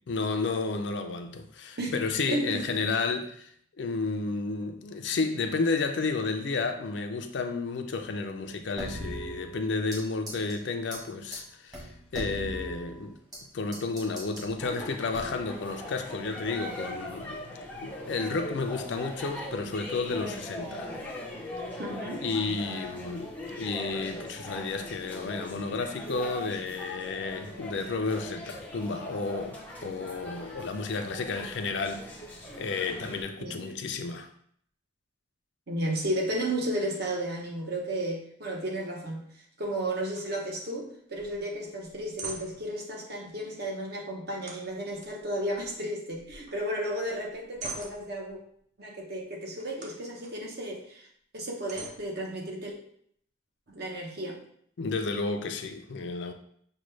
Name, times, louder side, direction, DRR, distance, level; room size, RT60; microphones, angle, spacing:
voice 1, 0.1-3.5 3.8-11.9 12.1-13.2 13.5-17.4 17.8-20.9 22.2-23.3 23.6-32.0 32.6-34.3 54.8-56.3, left 4 dB, 60° left, 6 dB, 0.4 m, -32 dB
voice 2, 2.3-2.7 21.8-22.2 33.4-33.7 35.7-39.3 39.6-48.4 48.8-51.1 51.3-52.7 53.7-54.4, right 1 dB, 50° right, -1 dB, 0.9 m, -33 dB
sound 1, 8.8-10.0 10.3-10.5 10.9-11.0 11.3-11.4 11.7-13.4 13.7-14.5 15.1-15.5, equal, 20° right, 1.2 m, -39 dB
sound 2, 14.6-33.2, left 1 dB, 10° left, 0.7 m, -40 dB
sound 3, 40.2-40.3 40.6-40.7 41.2-41.4 41.8-42.7 44.4-45.9 46.2-46.7 47.1-48.4 49.6-50.4 50.9-51.0 51.7-52.7, right 4 dB, 35° right, 0.6 m, -44 dB
6.2 x 2.2 x 3.1 m, 0.65 s
head